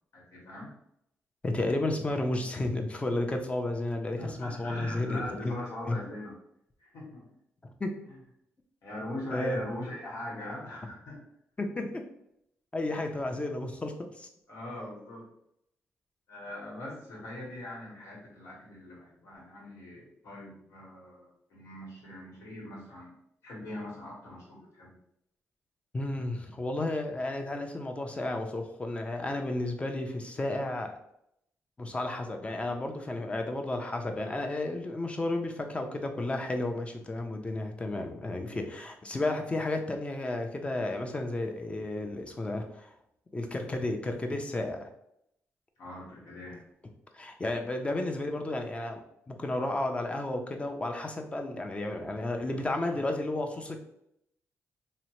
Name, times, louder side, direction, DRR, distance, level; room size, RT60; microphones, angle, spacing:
voice 1, 0.1-0.7 4.2-6.4 6.8-7.3 8.1-8.2 8.8-11.2 14.5-15.3 16.3-23.1 23.4-25.0 45.8-46.6, left 1 dB, 80° left, -4 dB, 1.2 m, -41 dB
voice 2, 1.4-5.5 5.9-6.0 7.6-7.9 9.3-9.6 11.6-12.0 12.7-14.3 25.9-30.9 31.8-42.9 43.3-44.9 47.1-49.0 49.3-53.8, left 2 dB, 25° left, 4 dB, 0.5 m, -32 dB
2.8 x 2.1 x 2.9 m, 0.76 s
cardioid pair, 80°, 5 cm